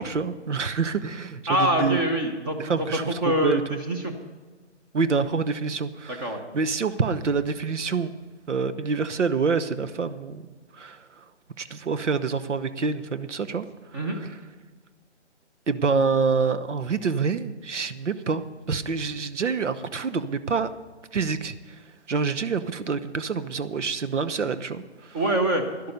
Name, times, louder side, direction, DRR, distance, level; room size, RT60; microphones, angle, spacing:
voice 1, 0.0-2.0 2.6-3.8 4.9-8.1 8.5-10.5 10.7-11.2 11.6-13.7 15.7-20.7 21.1-21.5 22.1-25.2, right 5 dB, 80° right, 13 dB, 1.0 m, -27 dB
voice 2, 1.5-4.1 6.1-6.4 13.9-14.2 25.1-25.9, right 1 dB, 20° right, 5 dB, 0.8 m, -25 dB
11.5 x 11.5 x 5.2 m, 1.4 s
hypercardioid pair, 155°, 35 cm